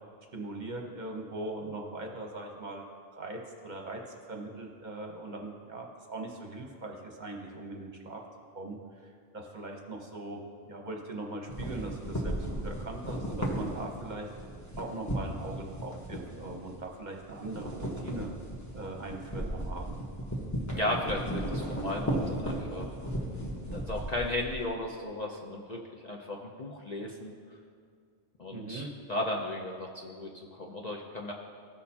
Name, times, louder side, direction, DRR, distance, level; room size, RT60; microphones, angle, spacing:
voice 1, 0.3-2.8 3.1-4.0 4.3-8.2 8.5-14.3 14.8-18.3 18.7-20.0 28.5-28.9, right 2 dB, 45° right, 1 dB, 0.9 m, -40 dB
sound 1, 11.5-16.9 17.2-24.7, equal, 15° left, 1.1 m, -35 dB
voice 2, 20.7-22.9 23.7-27.3 28.4-31.3, left 1 dB, 45° left, -1 dB, 0.7 m, -35 dB
16.0 x 6.4 x 2.8 m, 2.1 s
omnidirectional pair, 1.2 m